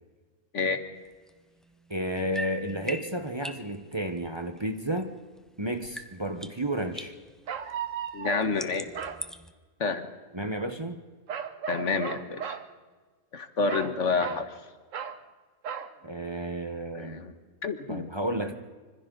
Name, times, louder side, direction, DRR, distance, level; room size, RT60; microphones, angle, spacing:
sound 1, 1.0-5.5 5.8-9.5, equal, ahead, 0.7 m, -43 dB
voice 1, 1.9-5.2 5.6-7.1 10.3-11.0 14.2-14.4 16.0-17.3 17.9-18.5, right 1 dB, 20° right, 6 dB, 1.1 m, -32 dB
sound 2, 5.8-5.9 7.5-8.5 8.9-9.2 11.3-12.7 13.7-14.5 14.9-15.2 15.6-15.9, right 8 dB, 75° right, 1.3 m, -35 dB
voice 2, 8.1-8.9 9.8-10.1 11.7-12.6 13.3-14.6 16.9-17.3 17.6-18.1, left 4 dB, 70° left, 9 dB, 1.7 m, -29 dB
26.0 x 25.5 x 4.0 m, 1.4 s
omnidirectional pair, 1.3 m